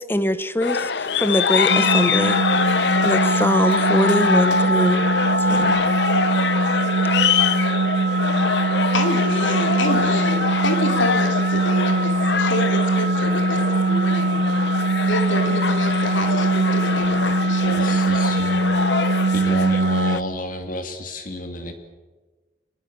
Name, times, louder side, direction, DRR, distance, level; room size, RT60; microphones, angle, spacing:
voice 1, 0.0-2.4 3.0-5.0 5.5-5.8, left 1 dB, 10° left, 12 dB, 1.0 m, -23 dB
sound 1, 0.6-20.2, left 5 dB, 65° left, 0.8 m, -24 dB
sound 2, 1.7-20.2, right 2 dB, 80° right, 2.0 m, -21 dB
voice 2, 8.9-14.5 15.1-18.0 18.3-18.6, left 2 dB, 90° left, 5 dB, 3.1 m, -28 dB
voice 3, 17.6-18.6 19.3-21.7, left 1 dB, 45° left, 6 dB, 2.6 m, -30 dB
24.0 x 21.5 x 7.7 m, 1.3 s
head